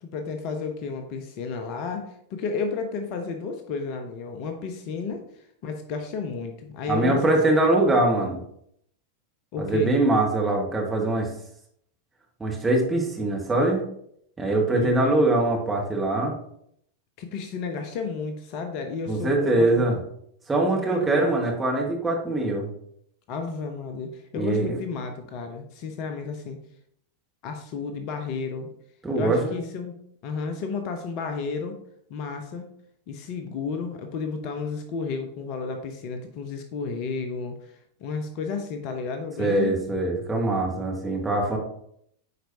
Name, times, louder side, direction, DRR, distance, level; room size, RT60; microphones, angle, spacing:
voice 1, 0.0-5.2 5.6-7.7 9.5-9.9 14.7-15.2 17.2-19.8 20.7-21.3 23.3-26.6 27.4-28.7 29.1-29.9 30.2-31.8 32.1-32.7 33.1-39.7, left 5 dB, 45° left, 6 dB, 0.8 m, -32 dB
voice 2, 6.9-8.4 9.6-11.3 12.4-13.8 14.4-16.3 19.1-19.9 20.5-22.7 24.4-24.8 29.0-29.6 39.4-41.6, right 2 dB, 10° right, -1 dB, 1.6 m, -23 dB
9.2 x 4.5 x 2.8 m, 0.71 s
figure-of-eight pair, 90°, 0 cm